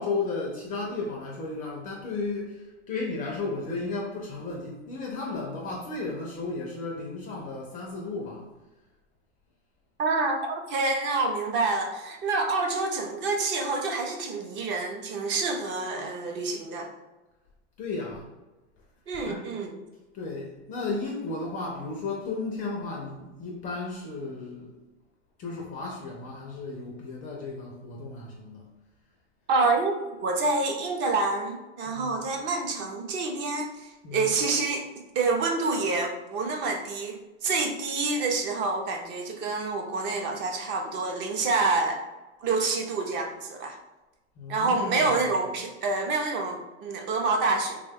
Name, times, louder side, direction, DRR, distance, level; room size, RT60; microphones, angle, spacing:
voice 1, 0.0-8.5 17.8-18.3 19.2-19.5 20.1-24.7 25.4-28.6 31.9-32.2 34.0-34.3 44.4-45.3, left 3 dB, 25° left, -1 dB, 0.4 m, -34 dB
voice 2, 10.0-16.9 19.1-19.8 29.5-29.9 30.2-34.9 35.2-42.0 42.4-43.8 44.5-47.8, right 3 dB, 30° right, 3 dB, 0.5 m, -27 dB
3.4 x 2.2 x 3.4 m, 1.1 s
supercardioid pair, 130°, 37 cm